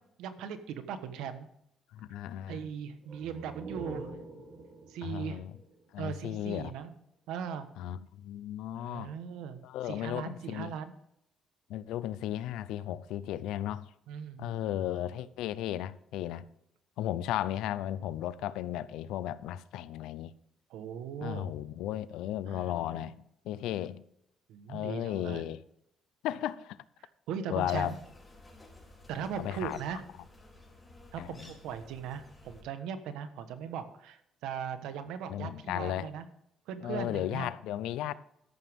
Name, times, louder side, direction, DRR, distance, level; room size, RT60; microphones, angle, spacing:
voice 1, 0.2-1.5 2.5-4.1 4.9-5.4 6.0-6.9 7.3-7.7 8.7-9.6 9.8-10.9 14.1-14.6 20.7-21.5 22.5-22.7 24.5-25.4 27.0-28.0 29.1-30.0 31.1-36.2 36.7-37.5, right 7 dB, 90° right, 1.2 m, -39 dB
voice 2, 1.9-2.6 5.0-5.5 5.9-6.7 7.8-9.1 9.6-10.7 11.7-13.9 14.4-16.5 17.0-20.3 21.2-24.0 24.7-25.6 26.2-26.8 27.5-27.9 29.4-29.8 31.2-31.5 35.3-36.1 36.8-38.1, left 12 dB, 90° left, 0.6 m, -35 dB
sound 1, 3.0-6.6, right 2 dB, 60° right, 3.3 m, -46 dB
sound 2, 27.6-32.6, left 2 dB, 15° left, 5.1 m, -54 dB
13.5 x 11.0 x 3.6 m
cardioid pair, 100°, 0 cm